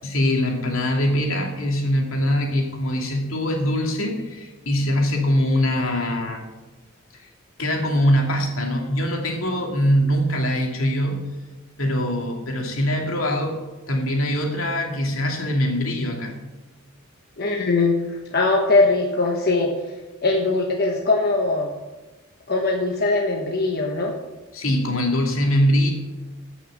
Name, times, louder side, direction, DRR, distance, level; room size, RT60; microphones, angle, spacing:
voice 1, 0.0-6.4 7.2-7.3 7.6-11.3 11.8-13.6 13.9-16.3 24.5-25.9, equal, 80° left, 1 dB, 2.6 m, -22 dB
voice 2, 17.4-18.0 18.3-19.7 20.2-21.7 22.5-24.2, left 3 dB, 50° left, 1 dB, 1.2 m, -21 dB
15.0 x 6.4 x 6.6 m, 1.2 s
head